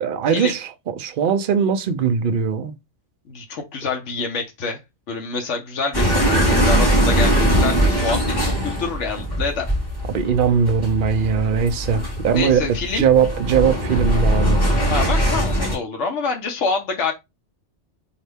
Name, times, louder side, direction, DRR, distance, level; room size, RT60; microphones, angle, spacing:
voice 1, 0.0-0.7 1.0-2.8 10.1-14.6, right 7 dB, 55° right, 0.6 m, -20 dB
voice 2, 3.3-4.8 5.1-9.7 12.3-13.0 14.8-17.1, left 4 dB, 75° left, 1.2 m, -26 dB
sound 1, 5.9-15.7, equal, 20° left, 2.5 m, -21 dB
4.1 x 2.8 x 3.4 m
omnidirectional pair, 1.2 m